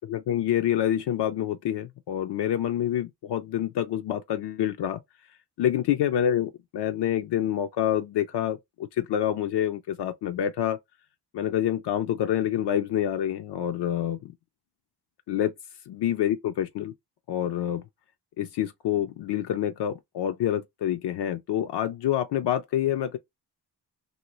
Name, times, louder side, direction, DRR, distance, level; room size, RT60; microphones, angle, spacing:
voice 1, 0.1-5.0 5.6-10.8 11.3-14.3 15.3-15.5 15.9-16.9 17.3-17.8 18.4-23.2, left 11 dB, 75° left, 0.5 m, -27 dB
2.8 x 2.6 x 3.0 m
wide cardioid pair, 120°, 41 cm